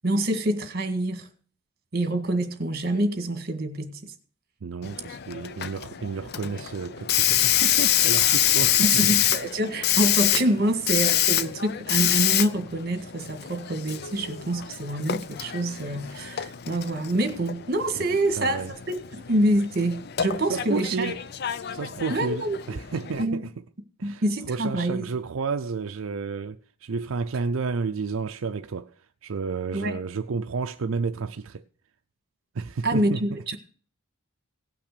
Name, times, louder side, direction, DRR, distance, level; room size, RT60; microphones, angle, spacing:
voice 1, 0.0-1.3 1.9-4.1 8.8-21.1 22.1-22.8 23.2-23.5 24.0-25.0 29.7-30.0 32.8-33.6, right 1 dB, 50° right, 1.8 m, -26 dB
voice 2, 4.6-9.1 18.0-18.7 20.5-21.2 21.7-23.5 24.0-31.6 32.5-33.4, right 4 dB, 80° right, 0.5 m, -31 dB
Hiss, 4.8-23.2, left 11 dB, 50° left, 0.5 m, -26 dB
17.0 x 6.0 x 6.7 m
head